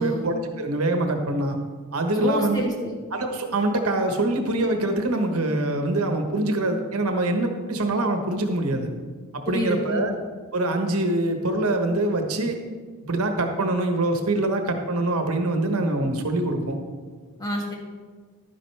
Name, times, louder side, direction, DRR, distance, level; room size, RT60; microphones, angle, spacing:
voice 1, 0.0-1.6 1.9-2.7 3.1-8.9 9.3-10.1 10.5-12.6 13.1-16.8, right 2 dB, 80° right, 5 dB, 1.2 m, -24 dB
voice 2, 2.2-2.9 9.5-10.0 17.4-17.7, equal, 15° left, 0 dB, 1.4 m, -27 dB
11.5 x 10.0 x 3.4 m, 1.5 s
head